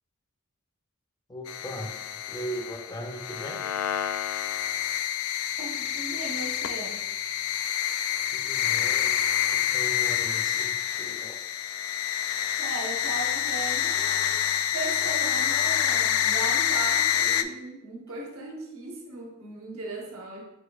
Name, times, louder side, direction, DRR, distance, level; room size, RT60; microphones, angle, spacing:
voice 1, 1.3-3.6 8.3-9.1 9.5-11.4, right 1 dB, 20° left, 2 dB, 0.5 m, -38 dB
sound 1, 1.5-17.4, left 10 dB, 80° left, 0.3 m, -27 dB
voice 2, 5.6-7.0 12.6-14.3 14.7-20.4, right 2 dB, 90° right, -1 dB, 1.0 m, -37 dB
5.0 x 4.3 x 2.3 m, 0.86 s
head